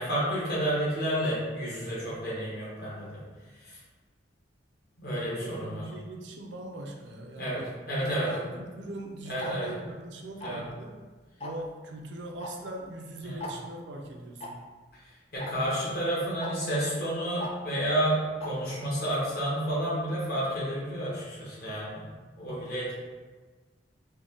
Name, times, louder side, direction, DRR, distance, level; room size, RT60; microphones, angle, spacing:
voice 1, 0.0-3.2 3.6-3.8 5.0-5.8 7.4-7.6 7.9-8.3 9.2-9.7 10.4-10.6 13.2-13.4 15.3-22.0 22.3-22.9, right 1 dB, 50° left, -7 dB, 1.4 m, -30 dB
voice 2, 5.4-11.0 11.4-14.6, right 1 dB, 65° right, 2 dB, 0.5 m, -41 dB
Tick-tock, 9.4-9.5 10.4-10.7 11.4-11.7 12.4-12.5 12.8-12.9 13.4-13.5 14.4-14.5 15.4-15.5 16.4-16.5 17.4-17.5 18.4-18.5, left 2 dB, 30° left, 0.3 m, -37 dB
3.6 x 2.3 x 3.7 m, 1.3 s
head